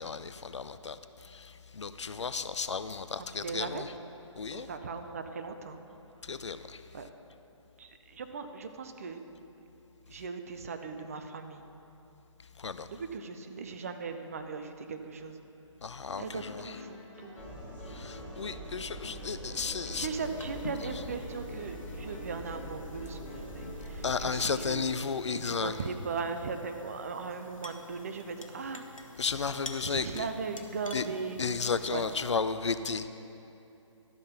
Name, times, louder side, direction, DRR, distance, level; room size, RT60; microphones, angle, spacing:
voice 1, 0.0-3.9 4.3-4.7 6.2-6.8 12.6-12.9 15.8-16.8 17.9-20.1 20.9-21.0 24.0-25.8 29.2-30.3 30.9-31.1 31.4-33.1, left 5 dB, 65° left, 12 dB, 0.4 m, -34 dB
voice 2, 3.4-3.9 4.5-5.8 6.9-7.1 7.8-9.2 10.1-11.6 12.9-15.4 16.2-17.4 19.9-24.9 25.5-29.2 29.8-31.5 31.9-32.0, right 5 dB, 30° right, 7 dB, 0.4 m, -38 dB
sound 1, 16.1-24.0, left 2 dB, 25° left, 1.8 m, -50 dB
sound 2, 17.4-24.4, equal, 10° right, 0.9 m, -43 dB
sound 3, 20.0-32.3, left 2 dB, 85° left, 0.9 m, -49 dB
12.0 x 5.2 x 5.8 m, 2.9 s
figure-of-eight pair, 140°, 16 cm